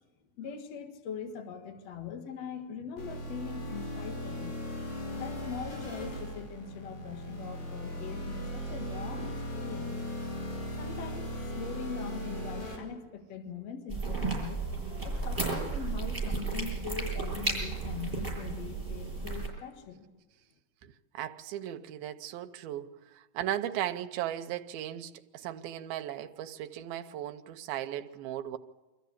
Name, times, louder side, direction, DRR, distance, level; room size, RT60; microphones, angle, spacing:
voice 1, 0.4-4.6 5.1-10.0 10.8-14.7 15.0-20.1, left 6 dB, 50° left, 4 dB, 2.4 m, -41 dB
sound 1, 3.0-12.8, equal, 75° left, 6.9 m, -38 dB
sound 2, 13.9-19.5, right 3 dB, 5° right, 7.0 m, -33 dB
voice 2, 20.8-28.6, right 12 dB, 80° right, 7 dB, 2.7 m, -37 dB
25.0 x 14.5 x 8.5 m, 1.2 s
omnidirectional pair, 4.4 m